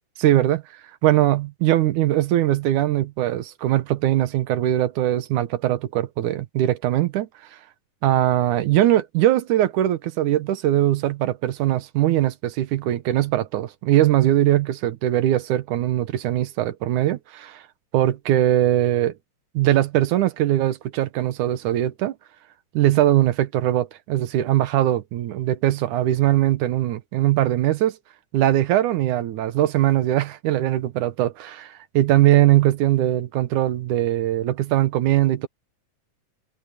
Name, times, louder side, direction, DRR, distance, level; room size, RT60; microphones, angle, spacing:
voice 1, 0.2-0.6 1.0-7.3 8.0-17.6 17.9-19.1 19.5-22.2 22.7-28.0 28.3-35.5, right 13 dB, 85° right, 2.5 m, -21 dB
open air
omnidirectional pair, 3.5 m